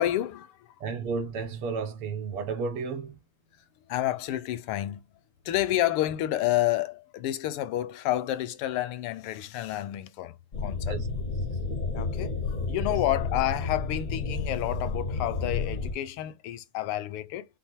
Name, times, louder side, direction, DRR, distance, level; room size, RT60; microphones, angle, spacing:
voice 1, 0.0-0.7 3.9-5.0 5.4-11.0 11.9-17.5, left 13 dB, 80° left, 1.5 m, -29 dB
voice 2, 0.8-3.2 10.9-11.1, right 5 dB, 85° right, 2.1 m, -32 dB
sound 1, 10.5-15.9, left 4 dB, 45° left, 0.6 m, -31 dB
5.3 x 2.0 x 4.3 m
omnidirectional pair, 2.4 m